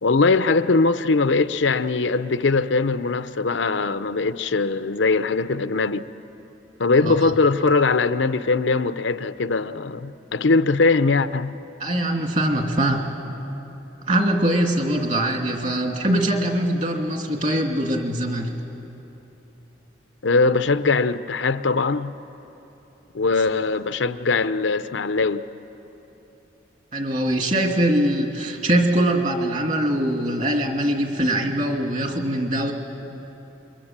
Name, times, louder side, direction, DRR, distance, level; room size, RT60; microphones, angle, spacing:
voice 1, 0.0-6.0 6.8-11.5 20.2-22.1 23.1-25.4, left 3 dB, 85° left, 0.7 m, -21 dB
voice 2, 11.8-13.1 14.1-18.5 26.9-32.7, right 1 dB, 40° right, 2.6 m, -22 dB
28.0 x 23.5 x 7.4 m
head